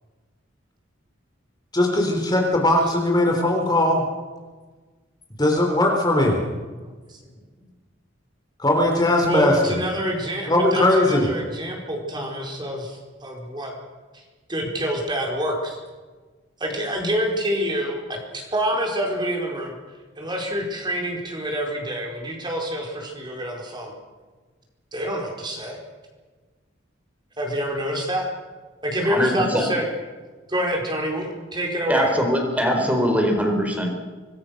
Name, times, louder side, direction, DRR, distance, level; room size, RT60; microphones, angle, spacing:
voice 1, 1.7-4.0 5.4-6.4 8.6-9.5 10.5-11.3, left 1 dB, 20° left, 1 dB, 3.5 m, -19 dB
voice 2, 9.2-13.7 14.5-15.8 16.6-19.7 20.2-23.9 24.9-25.8 27.4-28.3 28.8-29.9 30.5-32.1, equal, 25° right, 1 dB, 4.6 m, -27 dB
voice 3, 29.1-29.7 31.9-33.9, equal, 5° right, 3 dB, 4.3 m, -22 dB
25.5 x 20.5 x 6.5 m, 1.4 s
head